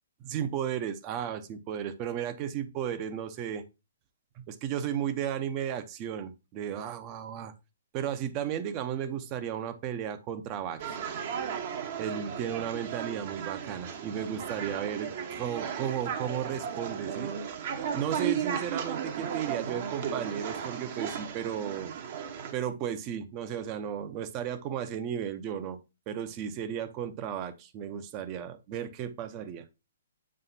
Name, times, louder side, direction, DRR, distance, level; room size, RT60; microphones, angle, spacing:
voice 1, 0.2-3.6 4.4-7.5 7.9-11.0 12.0-17.3 17.9-21.9 22.5-29.6, right 9 dB, 35° right, 11 dB, 0.8 m, -34 dB
sound 1, 10.8-22.5, right 8 dB, 50° right, 1.1 m, -35 dB
7.5 x 4.8 x 2.8 m, 0.26 s
figure-of-eight pair, 125°, 0 cm